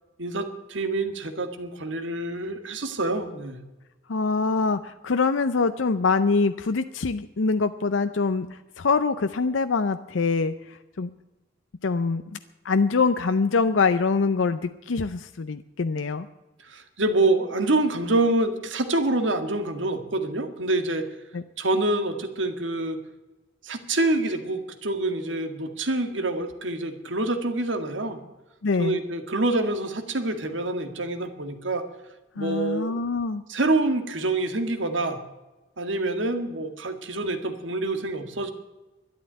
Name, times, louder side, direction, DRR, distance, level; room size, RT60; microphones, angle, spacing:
voice 1, 0.2-3.6 16.6-21.1 21.6-23.0 23.6-28.2 28.8-31.8 32.4-33.0 33.5-35.2 35.8-38.5, right 2 dB, 70° right, 8 dB, 1.8 m, -26 dB
voice 2, 4.1-11.1 11.8-12.4 12.6-16.3 21.3-21.4 28.6-29.0 32.4-33.4, left 4 dB, 75° left, 10 dB, 0.6 m, -24 dB
12.5 x 11.0 x 9.1 m, 1.1 s
head